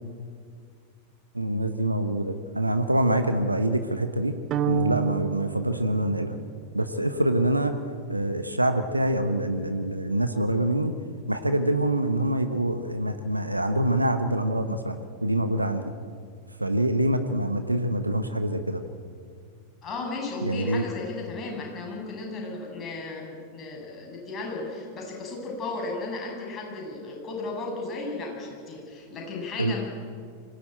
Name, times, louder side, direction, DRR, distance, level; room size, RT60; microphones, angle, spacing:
voice 1, 1.3-4.3 4.7-6.4 6.7-7.7 8.1-10.9 11.3-15.8 16.6-18.8 20.4-20.8 29.6-29.7, right 1 dB, 85° right, 9 dB, 1.1 m, -25 dB
sound 1, 4.5-6.8, right 10 dB, 35° right, 1.1 m, -31 dB
voice 2, 19.8-29.8, left 3 dB, 25° left, -1 dB, 7.4 m, -35 dB
24.5 x 17.0 x 9.1 m, 2.2 s
figure-of-eight pair, 90°, 0 cm